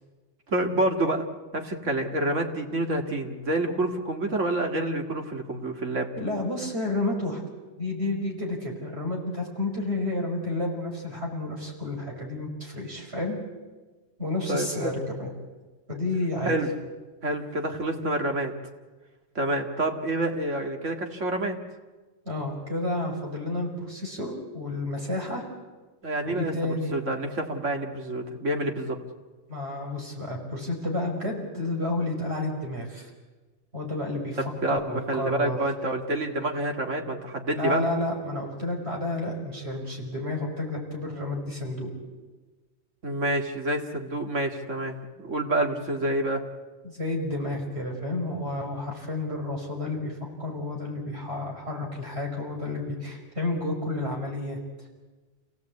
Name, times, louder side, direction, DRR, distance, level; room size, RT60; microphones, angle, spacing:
voice 1, 0.5-1.2 1.5-6.1 14.5-14.9 16.5-16.7 17.2-18.5 19.3-21.6 26.0-29.0 34.4-37.8 43.0-46.4, right 1 dB, 85° right, 3 dB, 2.5 m, -28 dB
voice 2, 6.2-7.4 7.8-13.4 14.2-15.3 15.9-16.6 22.3-25.4 26.2-26.9 29.5-33.1 33.7-34.4 34.7-35.6 37.5-41.9 46.8-54.6, left 2 dB, 60° right, 0 dB, 5.6 m, -31 dB
28.5 x 17.0 x 8.5 m, 1.3 s
omnidirectional pair, 1.2 m